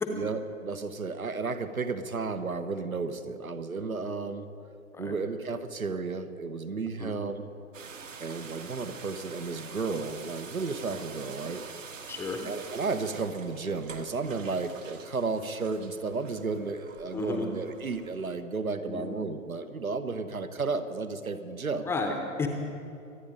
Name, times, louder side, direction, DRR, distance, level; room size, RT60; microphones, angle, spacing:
voice 1, 0.1-4.5 5.0-7.5 8.2-11.7 12.4-21.9, right 4 dB, 85° right, 9 dB, 1.1 m, -33 dB
sound 1, 7.7-18.4, right 5 dB, 65° right, 1.5 m, -46 dB
voice 2, 12.1-12.4 17.1-17.5 18.9-19.2 21.8-22.5, left 4 dB, 5° left, 3 dB, 0.7 m, -32 dB
24.5 x 9.2 x 5.1 m, 2.7 s
figure-of-eight pair, 120°, 42 cm